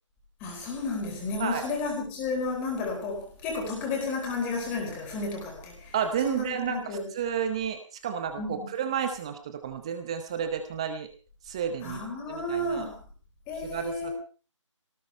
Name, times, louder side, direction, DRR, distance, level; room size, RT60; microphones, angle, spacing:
voice 1, 0.4-5.9 6.2-7.1 8.4-8.7 11.8-13.0 13.5-14.1, left 3 dB, 10° left, 4.1 m, -32 dB
voice 2, 5.9-11.1 11.4-12.9 13.6-14.1, right 8 dB, 10° right, 0.8 m, -31 dB
22.5 x 18.5 x 3.4 m
figure-of-eight pair, 160°, 16 cm